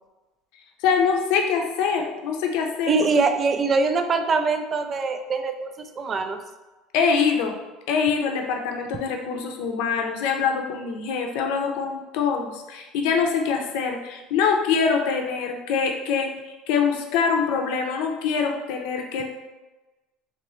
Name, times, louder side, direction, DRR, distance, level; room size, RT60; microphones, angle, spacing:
voice 1, 0.8-2.9 6.9-7.5 7.9-19.2, left 6 dB, 75° left, 3 dB, 0.6 m, -24 dB
voice 2, 2.9-6.4, right 4 dB, 25° right, 7 dB, 0.3 m, -23 dB
3.9 x 3.2 x 3.1 m, 1.1 s
cardioid pair, 155°, 0 cm